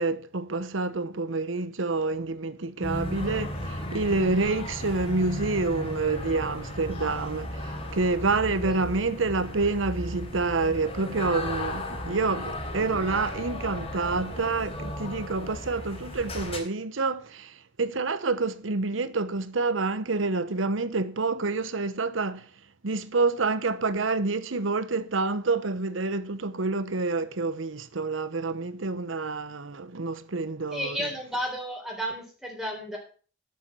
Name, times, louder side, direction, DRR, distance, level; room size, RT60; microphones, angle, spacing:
voice 1, 0.0-22.5 22.8-31.1, right 3 dB, 85° right, 0.9 m, -28 dB
sound 1, 2.8-16.6, left 1 dB, 35° left, 3.4 m, -35 dB
voice 2, 30.7-33.0, equal, ahead, 3.9 m, -32 dB
12.0 x 7.2 x 6.1 m
head